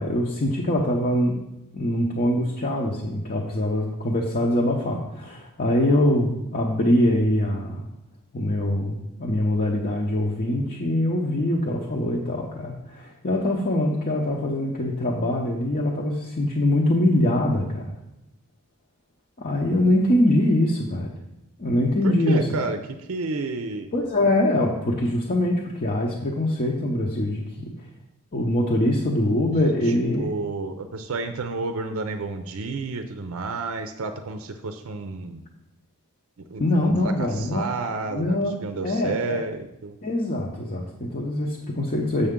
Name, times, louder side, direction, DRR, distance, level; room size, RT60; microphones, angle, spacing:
voice 1, 0.0-1.4 1.7-7.8 8.3-17.9 19.4-21.1 21.6-22.5 23.9-27.7 28.3-30.3 36.6-37.6 38.1-38.5 38.8-39.4 40.0-42.3, left 1 dB, 40° left, -2 dB, 0.8 m, -23 dB
voice 2, 22.0-23.9 29.8-35.4 36.4-40.0, right 3 dB, 65° right, 8 dB, 0.5 m, -31 dB
6.9 x 6.6 x 3.7 m, 0.92 s
head